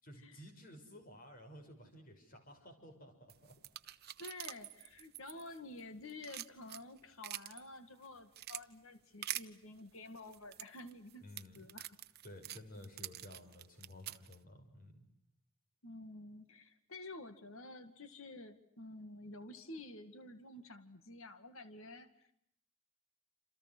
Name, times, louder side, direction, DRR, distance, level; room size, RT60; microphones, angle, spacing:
voice 1, 0.0-3.5 11.2-11.7 12.2-15.0, left 1 dB, 40° left, 6 dB, 6.2 m, -54 dB
sound 1, 3.3-5.8 6.1-7.6 8.0-8.6 9.2-9.5 10.2-14.4, right 13 dB, 45° right, 1.0 m, -45 dB
voice 2, 4.2-11.2 11.6-12.0 15.8-22.3, left 2 dB, 65° left, 10 dB, 2.1 m, -50 dB
28.5 x 28.0 x 6.2 m, 0.72 s
head